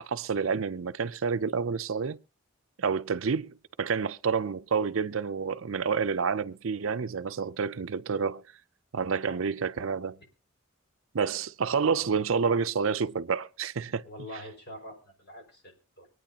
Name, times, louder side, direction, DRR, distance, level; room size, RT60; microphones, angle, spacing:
voice 1, 0.1-2.2 2.8-8.4 8.9-10.2 11.1-14.0, right 5 dB, 65° right, 0.5 m, -29 dB
voice 2, 14.0-16.1, equal, 50° left, 5.6 m, -45 dB
25.0 x 9.3 x 2.9 m
head